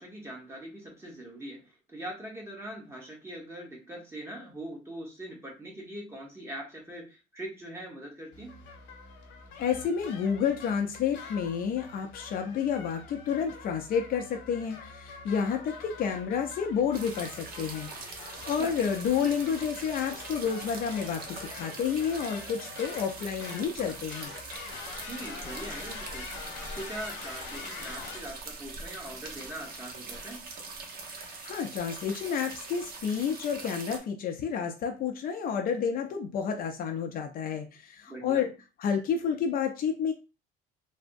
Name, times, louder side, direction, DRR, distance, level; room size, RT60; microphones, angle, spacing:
voice 1, 0.0-8.7 18.3-18.8 25.0-26.3 26.6-30.5 38.1-38.5, right 1 dB, 15° right, -1 dB, 1.0 m, -42 dB
sound 1, 8.3-28.2, left 5 dB, 70° left, 1.0 m, -45 dB
voice 2, 9.6-24.3 31.1-38.5 38.8-40.1, left 7 dB, 50° left, 4 dB, 0.5 m, -30 dB
sound 2, 16.9-34.0, right 3 dB, 50° right, 0.7 m, -42 dB
3.4 x 2.0 x 2.5 m, 0.29 s
cardioid pair, 135°, 19 cm